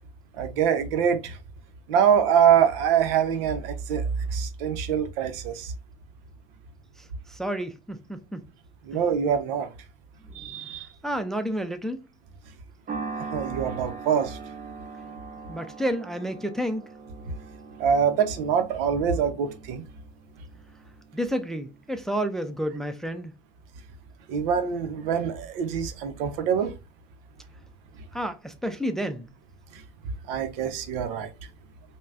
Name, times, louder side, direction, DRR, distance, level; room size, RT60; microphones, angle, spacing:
voice 1, 0.4-1.4 1.9-5.7 8.9-9.7 10.3-10.9 13.3-14.4 17.8-19.9 24.3-26.7 29.7-29.8 30.3-31.3, right 8 dB, 75° right, 0.7 m, -24 dB
voice 2, 7.3-8.4 8.9-9.0 10.3-10.6 11.0-12.0 15.5-16.9 21.1-23.3 28.1-29.3, equal, ahead, 0.5 m, -30 dB
sound 1, 12.9-21.4, right 4 dB, 30° right, 1.1 m, -40 dB
5.2 x 2.2 x 2.4 m
hypercardioid pair, 75°, 29 cm